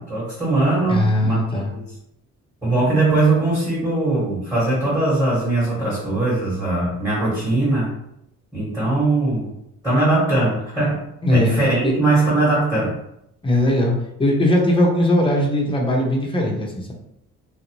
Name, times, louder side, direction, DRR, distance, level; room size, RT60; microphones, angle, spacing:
voice 1, 0.0-1.8 2.6-7.9 8.5-9.5 9.8-11.0 11.3-13.0, right 2 dB, 10° right, -7 dB, 1.2 m, -20 dB
voice 2, 0.9-1.7 11.2-11.5 11.8-11.9 13.4-13.9 14.2-16.9, left 1 dB, 15° left, -1 dB, 0.7 m, -19 dB
2.5 x 2.0 x 2.9 m, 0.79 s
cardioid pair, 90°, 30 cm